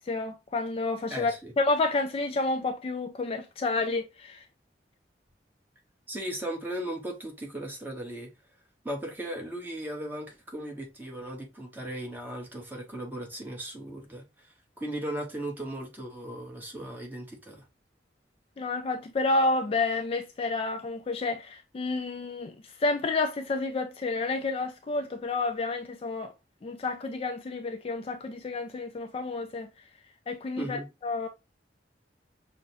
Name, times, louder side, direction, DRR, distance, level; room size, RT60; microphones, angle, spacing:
voice 1, 0.0-4.4 18.6-26.3 26.6-29.7 30.3-31.3, left 3 dB, 35° left, 0.3 m, -30 dB
voice 2, 1.1-1.5 6.1-8.3 8.8-14.5 14.8-17.6 30.6-30.9, right 1 dB, 10° right, 0.9 m, -37 dB
6.0 x 2.1 x 2.6 m
head